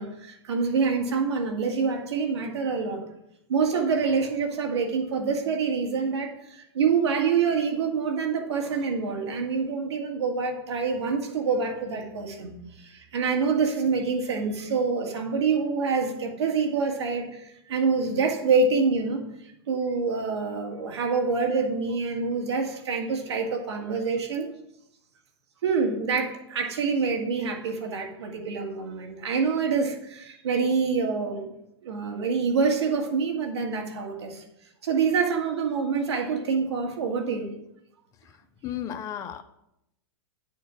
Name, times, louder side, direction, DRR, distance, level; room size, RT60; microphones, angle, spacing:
voice 1, 0.0-3.1 3.5-19.2 19.7-24.5 25.6-31.5 31.8-34.4 34.8-37.5, right 5 dB, 80° right, 3 dB, 1.9 m, -26 dB
voice 2, 38.6-39.4, left 10 dB, 25° left, 10 dB, 0.4 m, -33 dB
9.3 x 4.5 x 6.2 m, 0.82 s
hypercardioid pair, 145°, 14 cm